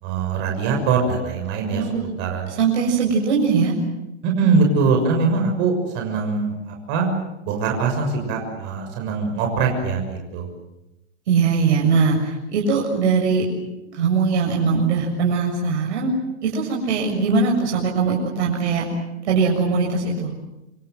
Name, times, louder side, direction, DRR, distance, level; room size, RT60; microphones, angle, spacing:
voice 1, 0.0-2.5 4.2-7.1 7.4-10.5, right 4 dB, 30° right, 2 dB, 6.5 m, -22 dB
voice 2, 1.7-2.1 2.6-3.7 11.3-13.4 14.0-16.1 16.4-18.9 19.2-20.3, right 5 dB, 70° right, -2 dB, 7.2 m, -20 dB
27.5 x 26.0 x 7.8 m, 0.93 s
supercardioid pair, 170°, 35 cm